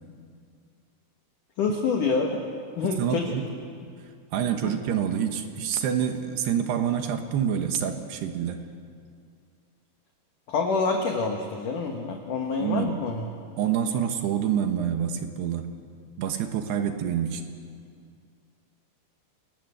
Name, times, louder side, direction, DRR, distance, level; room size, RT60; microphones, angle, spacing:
voice 1, 1.6-2.4 2.8-3.3 4.6-4.7 10.5-13.3, left 4 dB, 60° left, 2 dB, 2.3 m, -27 dB
voice 2, 2.9-3.4 4.3-8.6 12.6-13.0 13.6-15.7 16.2-17.4, right 9 dB, 70° right, 6 dB, 3.0 m, -27 dB
27.5 x 20.0 x 8.0 m, 2.2 s
omnidirectional pair, 5.6 m